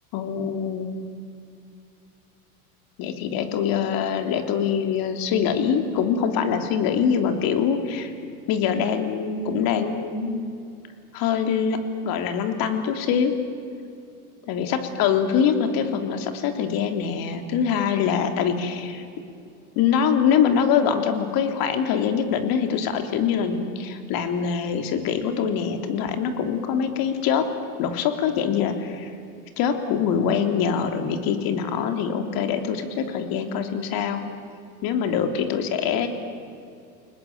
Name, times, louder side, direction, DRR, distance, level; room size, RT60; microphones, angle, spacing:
voice 1, 0.1-0.9 3.0-10.5 11.1-13.3 14.5-19.0 19.7-27.5 27.8-29.1 29.6-34.2 34.8-36.2, left 7 dB, 50° left, 6 dB, 3.3 m, -24 dB
29.5 x 19.5 x 9.4 m, 2.5 s
supercardioid pair, 115°, 45 cm